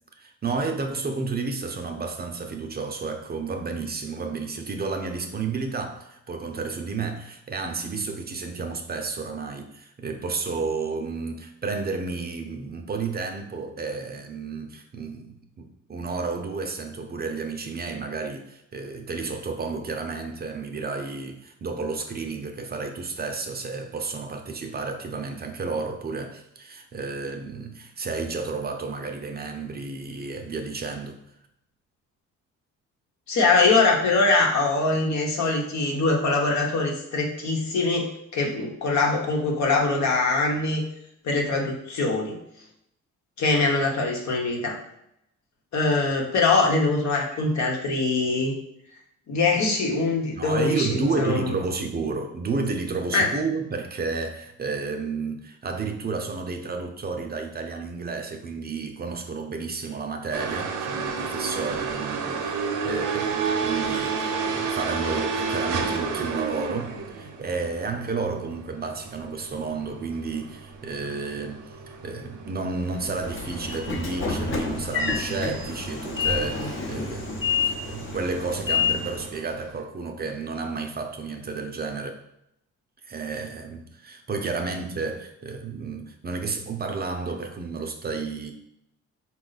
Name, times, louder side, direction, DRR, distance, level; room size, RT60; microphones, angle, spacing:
voice 1, 0.2-31.2 50.3-82.2 83.0-88.5, right 4 dB, 30° right, 0.5 m, -31 dB
voice 2, 33.3-38.1 38.3-40.8 41.2-42.4 43.4-44.8 45.7-48.5 49.3-51.5 53.1-53.3, left 3 dB, 65° left, 1.0 m, -23 dB
sound 1, 60.3-79.8, right 5 dB, 80° right, 0.7 m, -32 dB
Train / Sliding door, 72.8-79.3, left 5 dB, 40° left, 0.8 m, -29 dB
4.2 x 2.3 x 4.0 m
cardioid pair, 90°, 30 cm